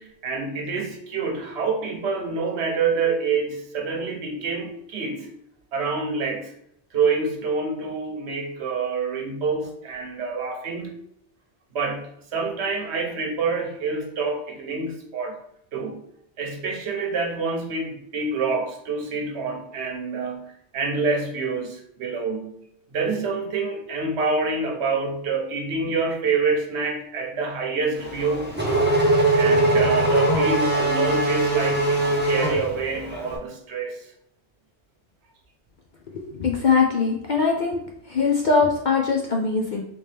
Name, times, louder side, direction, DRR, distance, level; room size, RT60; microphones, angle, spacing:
voice 1, 0.0-5.3 5.7-6.5 6.9-11.0 11.7-15.3 15.7-16.0 16.4-22.5 22.9-28.5 29.3-34.1, right 4 dB, 70° right, 2 dB, 1.0 m, -27 dB
Race car auto racing / Accelerating revving vroom, 28.0-33.2, right 2 dB, 15° right, 0.5 m, -21 dB
voice 2, 36.1-37.8 38.1-39.8, left 5 dB, 55° left, 0 dB, 0.5 m, -21 dB
3.4 x 2.8 x 3.2 m, 0.75 s
omnidirectional pair, 1.2 m